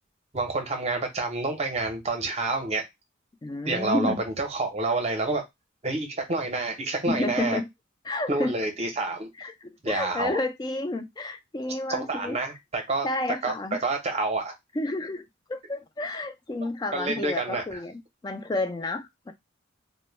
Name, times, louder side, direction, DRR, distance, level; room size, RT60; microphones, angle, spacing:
voice 1, 0.3-2.8 3.7-5.4 5.8-7.6 8.3-9.3 9.8-10.4 11.9-13.1 13.4-14.5 16.9-17.8, right 3 dB, 30° right, 0.6 m, -28 dB
voice 2, 3.4-4.2 7.1-7.7 8.1-8.5 9.4-12.4 13.0-13.8 14.8-15.2 15.5-19.3, left 2 dB, 20° left, 0.3 m, -30 dB
2.1 x 2.1 x 3.1 m
head